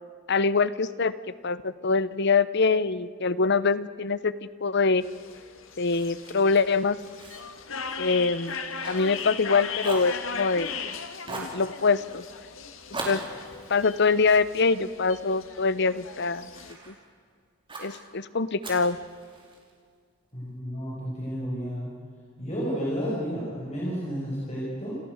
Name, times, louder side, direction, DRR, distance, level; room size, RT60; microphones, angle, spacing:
voice 1, 0.3-1.1 1.4-4.3 4.6-5.0 5.8-7.0 8.0-8.6 8.9-10.7 11.3-12.2 13.0-13.2 13.7-16.5 16.9-17.0 17.8-19.0, left 4 dB, 60° left, 16 dB, 0.9 m, -24 dB
sound 1, 5.0-16.7, left 5 dB, 80° left, 1.9 m, -38 dB
Fire, 5.8-9.5 9.8-10.8 11.2-11.6 12.9-15.3 15.9-17.0 17.7-18.0 18.6-19.7, right 2 dB, 25° right, 4.8 m, -40 dB
voice 2, 20.3-21.9 22.4-25.0, equal, 35° left, -6 dB, 6.0 m, -31 dB
29.0 x 15.0 x 8.1 m, 2.1 s
head